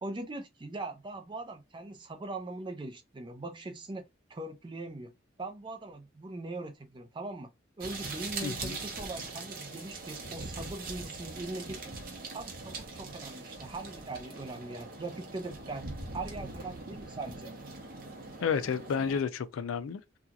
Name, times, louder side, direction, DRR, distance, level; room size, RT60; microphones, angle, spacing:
voice 1, 0.0-5.1 5.4-7.5 7.8-11.9 12.3-15.8 16.1-17.6, right 2 dB, 25° right, 0.4 m, -41 dB
sound 1, 7.8-19.2, right 3 dB, 45° right, 0.8 m, -42 dB
voice 2, 8.4-8.8 18.4-20.2, left 6 dB, 80° left, 0.4 m, -31 dB
2.8 x 2.3 x 2.3 m
head